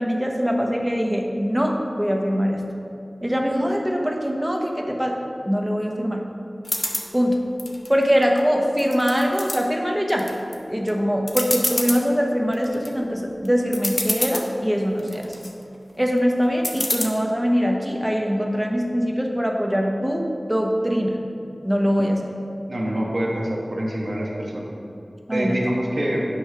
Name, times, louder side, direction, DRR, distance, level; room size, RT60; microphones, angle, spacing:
voice 1, 0.0-2.6 3.2-5.2 5.5-6.3 7.1-7.4 7.9-10.3 10.7-15.3 16.0-21.2 21.6-22.3 25.3-25.6, equal, 15° right, 1 dB, 0.9 m, -22 dB
sound 1, 6.6-7.1 7.6-8.4 8.8-9.6 10.1-10.5 10.9-11.0 11.3-12.0 12.5-12.9 13.5-13.6 13.7-14.5 15.0-15.5 16.6-17.1, left 1 dB, 40° left, 0.7 m, -26 dB
voice 2, 22.7-24.7 25.3-26.3, right 1 dB, 75° right, -3 dB, 1.2 m, -25 dB
8.7 x 3.1 x 5.7 m, 2.7 s
wide cardioid pair, 55°, 0 cm